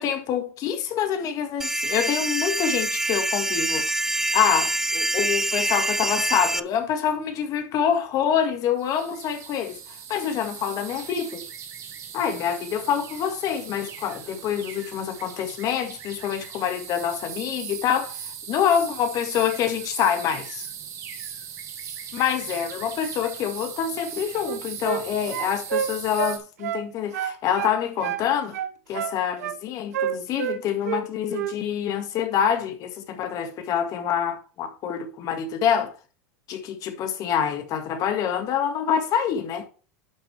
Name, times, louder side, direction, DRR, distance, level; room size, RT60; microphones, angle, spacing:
voice 1, 0.0-3.9 4.3-11.4 12.1-18.2 18.5-20.7 22.1-28.6 28.9-35.9 36.5-39.7, left 8 dB, 45° left, 1.9 m, -26 dB
sound 1, 1.6-6.6, right 1 dB, 5° right, 0.5 m, -25 dB
sound 2, 8.8-26.4, right 8 dB, 40° right, 2.9 m, -39 dB
sound 3, 24.3-25.1 25.3-26.9 27.1-28.3 28.5-29.6 29.9-31.0 31.3-31.6, right 10 dB, 90° right, 1.0 m, -29 dB
11.0 x 6.4 x 3.4 m
supercardioid pair, 120°, 8 cm